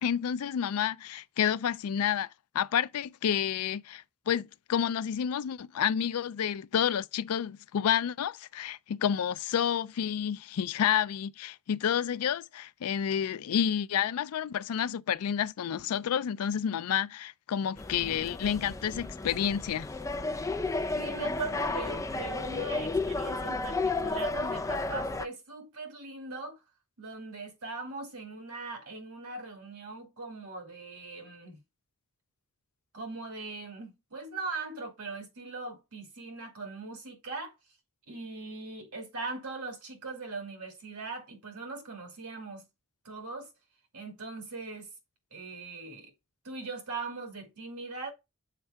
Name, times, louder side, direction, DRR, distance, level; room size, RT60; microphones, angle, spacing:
voice 1, 0.0-2.3 2.5-19.9, left 8 dB, 85° left, 0.4 m, -30 dB
sound 1, 17.8-25.3, left 3 dB, 15° left, 0.4 m, -33 dB
voice 2, 20.9-26.6 27.0-31.6 32.9-37.5 38.1-42.6 43.0-43.5 43.9-44.9 45.3-46.1 46.4-48.1, right 3 dB, 85° right, 2.4 m, -40 dB
6.7 x 4.4 x 3.4 m
head